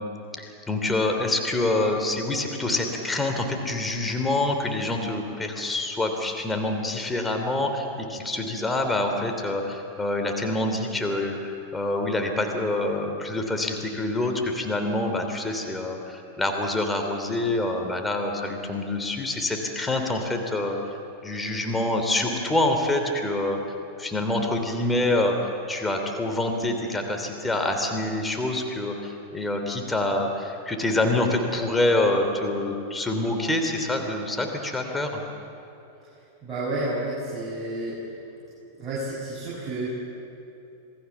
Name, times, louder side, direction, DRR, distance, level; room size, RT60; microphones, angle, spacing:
voice 1, 0.4-20.8 21.2-23.6 24.0-35.2, left 2 dB, 10° left, 3 dB, 3.2 m, -26 dB
voice 2, 36.4-38.0 38.8-39.9, right 2 dB, 25° right, -7 dB, 6.6 m, -30 dB
27.0 x 19.5 x 7.2 m, 2.9 s
hypercardioid pair, 95°, 0 cm